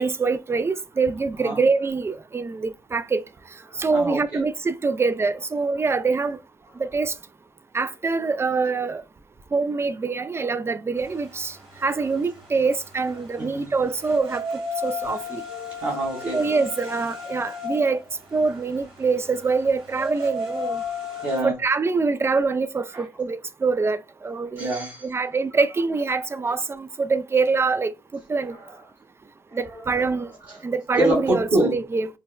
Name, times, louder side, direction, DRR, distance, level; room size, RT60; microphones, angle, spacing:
voice 1, 0.0-3.2 3.8-6.4 6.8-7.1 7.7-9.0 9.5-11.6 11.8-14.4 14.8-15.4 16.2-18.0 18.3-20.8 21.4-24.7 25.0-28.6 29.5-30.3 30.6-32.1, right 4 dB, 30° right, 0.4 m, -24 dB
voice 2, 3.7-4.4 13.4-13.7 15.5-16.4 20.8-21.5 22.9-23.0 24.3-25.1 28.5-28.7 29.5-30.1 30.5-30.6 30.9-31.7, right 1 dB, 55° right, 1.7 m, -27 dB
sound 1, 11.0-21.4, left 3 dB, 85° right, 1.3 m, -35 dB
4.5 x 2.0 x 2.3 m
supercardioid pair, 55°, 9 cm